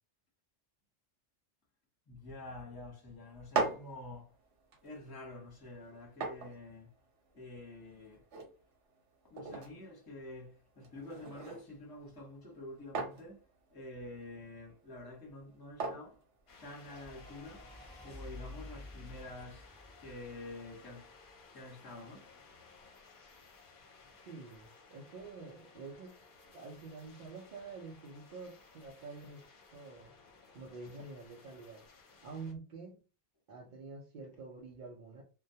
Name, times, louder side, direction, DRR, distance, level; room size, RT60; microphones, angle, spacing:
voice 1, 2.1-4.3 4.8-6.9 7.3-8.2 9.3-13.4 13.7-16.2 16.6-17.7 18.0-19.7 20.0-21.1 21.5-22.3, left 2 dB, 20° left, 0.8 m, -48 dB
sound 1, 3.3-17.2, right 4 dB, 80° right, 1.0 m, -43 dB
sound 2, 16.5-32.5, left 4 dB, 55° left, 0.7 m, -59 dB
sound 3, 16.8-21.2, left 1 dB, 10° right, 0.6 m, -51 dB
voice 2, 24.2-26.2 26.5-29.4 29.7-30.1 30.5-31.8 32.2-33.0 33.5-35.2, right 4 dB, 55° right, 0.6 m, -47 dB
2.2 x 2.1 x 2.7 m
omnidirectional pair, 1.2 m